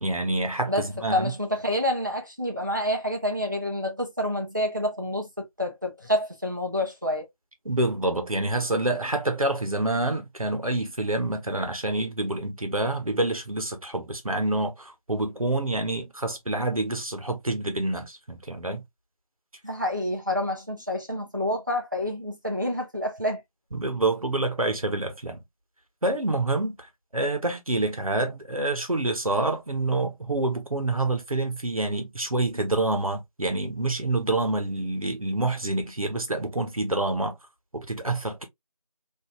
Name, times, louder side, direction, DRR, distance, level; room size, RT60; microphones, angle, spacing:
voice 1, 0.0-1.3 7.6-18.8 23.7-25.4 26.0-26.8 27.1-37.4 37.7-38.4, right 2 dB, 70° right, 1.0 m, -27 dB
voice 2, 0.7-7.3 19.6-23.4, left 1 dB, 35° right, 0.7 m, -28 dB
3.1 x 2.6 x 2.2 m
figure-of-eight pair, 175°, 19 cm